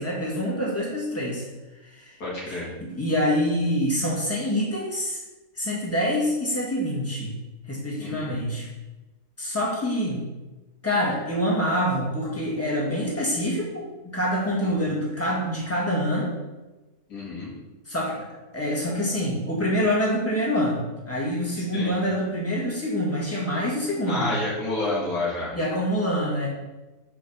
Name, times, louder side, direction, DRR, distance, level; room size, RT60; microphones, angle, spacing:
voice 1, 0.0-1.5 1.8-2.1 2.5-5.2 5.5-7.4 7.7-8.7 9.4-10.2 10.8-16.3 17.9-18.3 18.5-24.3 25.5-26.5, equal, 10° left, -5 dB, 1.5 m, -26 dB
voice 2, 2.2-2.7 8.0-8.3 14.6-14.7 17.1-17.5 21.7-21.9 24.1-25.5, left 2 dB, 75° left, -6 dB, 2.2 m, -29 dB
4.7 x 4.4 x 5.9 m, 1.1 s
omnidirectional pair, 1.7 m